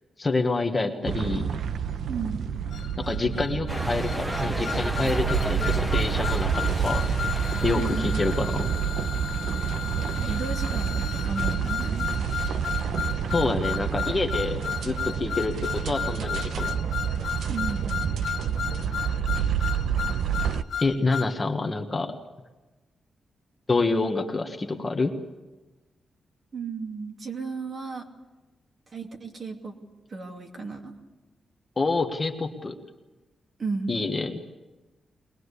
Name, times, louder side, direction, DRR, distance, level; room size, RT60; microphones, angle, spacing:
voice 1, 0.2-1.5 3.1-7.0 7.6-8.7 13.3-16.7 20.8-22.1 23.7-25.1 31.8-32.7 33.9-34.4, left 3 dB, 20° left, 4 dB, 1.4 m, -27 dB
sound 1, 1.0-20.6, right 8 dB, 90° right, 0.9 m, -28 dB
voice 2, 2.1-2.4 7.8-8.5 10.2-12.1 17.5-17.9 26.5-28.1 28.9-29.7 30.1-30.9 33.6-33.9, right 4 dB, 40° right, 3 dB, 2.6 m, -34 dB
sound 2, 2.7-21.3, left 8 dB, 55° left, 1.1 m, -34 dB
sound 3, 3.7-8.6, right 1 dB, 10° right, 0.9 m, -32 dB
23.0 x 20.0 x 8.3 m, 1.1 s
wide cardioid pair, 180°, 0 cm